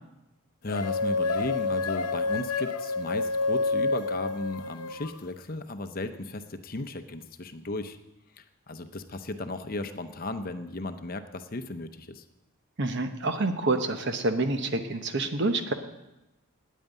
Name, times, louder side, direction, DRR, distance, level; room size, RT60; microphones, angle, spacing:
voice 1, 0.6-8.0 8.4-12.2, left 2 dB, 40° left, 9 dB, 0.7 m, -35 dB
sound 1, 0.7-5.2, left 3 dB, 85° left, 0.8 m, -28 dB
voice 2, 12.8-15.7, right 2 dB, 50° right, 8 dB, 1.0 m, -27 dB
9.4 x 9.2 x 9.2 m, 0.97 s
head